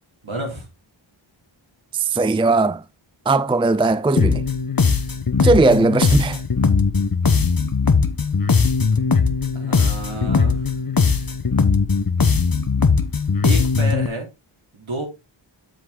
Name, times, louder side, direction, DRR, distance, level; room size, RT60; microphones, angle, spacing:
voice 1, 0.2-0.7 7.3-7.4 9.5-10.7 13.4-14.3 14.7-15.1, right 2 dB, 70° right, 3.7 m, -30 dB
voice 2, 1.9-2.8 3.3-4.4 5.4-6.4, right 3 dB, 10° right, 0.5 m, -18 dB
sound 1, 4.2-14.1, left 5 dB, 45° left, 1.1 m, -19 dB
7.9 x 6.3 x 3.8 m
wide cardioid pair, 50°, 49 cm